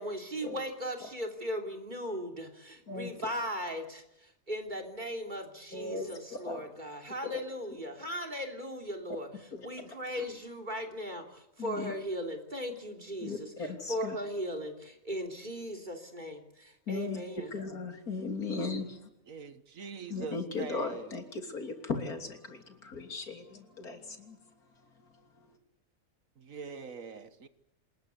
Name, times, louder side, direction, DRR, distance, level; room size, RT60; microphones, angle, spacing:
voice 1, 0.0-9.3 9.6-13.5 13.9-17.5, equal, 30° right, 3.3 m, -38 dB
voice 2, 2.9-3.3 5.7-6.7 7.2-7.4 9.5-10.2 11.6-11.9 13.2-14.2 16.9-19.1 20.1-25.6, left 3 dB, 85° left, 3.6 m, -38 dB
voice 3, 19.3-21.0 26.4-27.5, right 5 dB, 65° right, 1.7 m, -43 dB
27.0 x 20.5 x 8.3 m
omnidirectional pair, 1.5 m